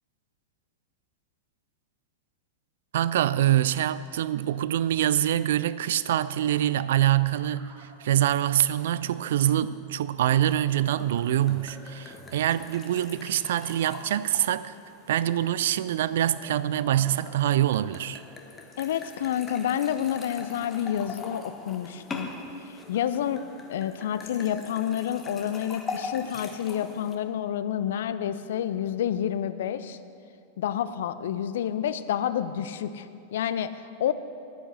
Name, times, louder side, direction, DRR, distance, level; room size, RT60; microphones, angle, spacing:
voice 1, 2.9-14.8 15.1-18.2, right 12 dB, 60° right, 16 dB, 0.3 m, -25 dB
sound 1, 7.5-12.4, right 3 dB, 40° right, 2.2 m, -54 dB
sound 2, 10.7-27.2, left 4 dB, 20° left, 1.2 m, -42 dB
voice 2, 18.8-22.4 22.6-30.0 30.6-34.1, left 10 dB, 60° left, 13 dB, 0.5 m, -29 dB
11.5 x 9.8 x 6.3 m, 2.5 s
figure-of-eight pair, 90°, 0 cm